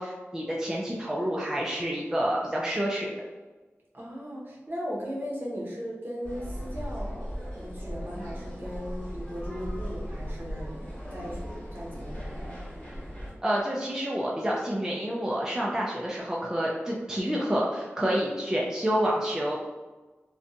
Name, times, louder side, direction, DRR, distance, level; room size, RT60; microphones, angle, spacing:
voice 1, 0.0-3.1 13.4-19.6, equal, 15° right, -4 dB, 0.3 m, -28 dB
voice 2, 3.9-10.8 11.1-11.4 11.7-12.4, equal, 50° right, -4 dB, 0.8 m, -37 dB
sound 1, 6.2-13.3, equal, 20° left, 1.4 m, -37 dB
2.6 x 2.2 x 2.5 m, 1.2 s
wide cardioid pair, 85°, 5 cm